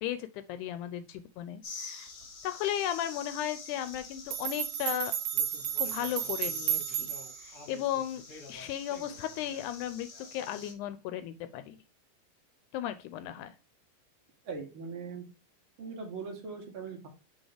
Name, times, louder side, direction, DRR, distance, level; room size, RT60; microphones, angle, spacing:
voice 1, 0.0-2.1 2.4-5.1 5.8-7.1 7.4-8.2 8.5-11.8 12.7-13.6, left 11 dB, 80° left, 11 dB, 1.9 m, -35 dB
sound 1, 1.6-10.7, left 4 dB, 35° left, 1.2 m, -47 dB
sound 2, 3.9-4.0 4.3-7.5, right 10 dB, 90° right, 2.3 m, -32 dB
voice 2, 14.5-15.3 15.8-17.1, right 5 dB, 50° right, 2 dB, 1.8 m, -40 dB
6.3 x 3.6 x 4.9 m, 0.30 s
omnidirectional pair, 3.7 m